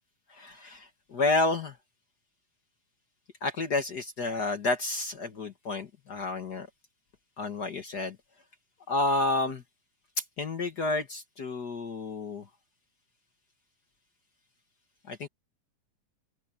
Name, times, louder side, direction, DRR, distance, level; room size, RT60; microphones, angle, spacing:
voice 1, 0.3-1.8 3.4-6.7 7.4-8.2 8.9-9.6 10.4-12.4 15.1-15.3, left 2 dB, 50° left, 1.2 m, -30 dB
open air
omnidirectional pair, 3.9 m